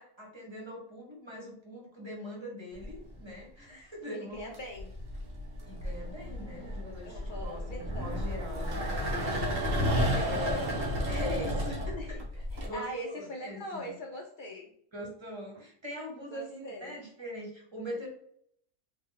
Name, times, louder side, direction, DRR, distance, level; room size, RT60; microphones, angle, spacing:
voice 1, 0.0-4.5 5.7-8.7 10.2-10.7 11.1-13.9 14.9-18.1, left 1 dB, 25° right, -2 dB, 1.0 m, -42 dB
sound 1, 2.8-3.3 4.4-12.7, equal, 85° right, 1.3 m, -32 dB
voice 2, 4.0-4.9 7.0-8.2 9.9-10.9 12.0-12.2 12.5-14.7 16.3-17.0, equal, 55° left, 1 dB, 0.5 m, -42 dB
3.6 x 2.2 x 3.7 m, 0.67 s
omnidirectional pair, 1.3 m